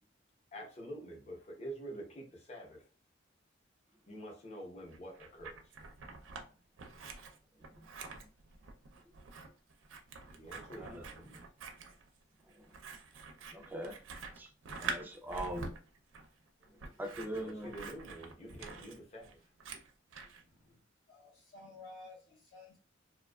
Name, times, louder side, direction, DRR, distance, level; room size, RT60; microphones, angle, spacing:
voice 1, 0.5-2.9 4.1-5.7 10.3-11.5 15.6-15.7 17.3-19.4, right 1 dB, 35° left, 0.8 m, -47 dB
Scissors, 4.9-6.5 6.8-20.4, right 4 dB, 80° right, 0.4 m, -46 dB
voice 2, 13.5-13.9 14.4-14.5 14.8-15.7 17.0-17.7, right 1 dB, 10° right, 0.3 m, -40 dB
voice 3, 20.3-20.8 21.1-22.8, left 2 dB, 65° left, 0.7 m, -54 dB
2.6 x 2.3 x 2.2 m
head